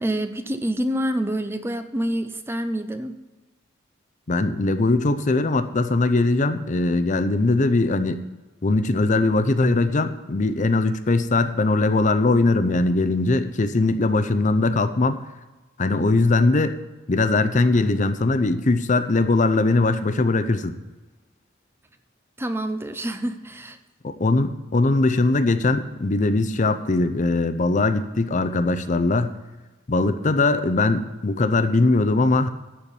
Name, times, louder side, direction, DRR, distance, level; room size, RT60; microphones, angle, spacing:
voice 1, 0.0-3.2 22.4-23.8, right 1 dB, 10° right, 8 dB, 0.6 m, -27 dB
voice 2, 4.3-8.2 8.6-15.2 15.8-16.8 17.1-20.8 24.0-29.3 29.9-32.5, left 2 dB, 40° left, 10 dB, 0.6 m, -20 dB
12.0 x 4.6 x 8.3 m, 1.2 s
head